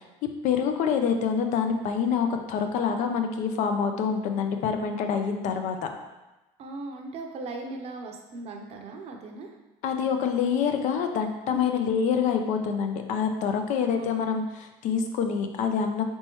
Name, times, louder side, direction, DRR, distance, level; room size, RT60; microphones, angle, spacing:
voice 1, 0.4-5.8 9.8-16.0, left 6 dB, 60° left, 5 dB, 0.5 m, -26 dB
voice 2, 6.6-9.5 11.5-11.9 13.7-14.1, right 2 dB, 50° right, 3 dB, 0.7 m, -38 dB
4.2 x 3.5 x 3.0 m, 1.0 s
supercardioid pair, 110°, 14 cm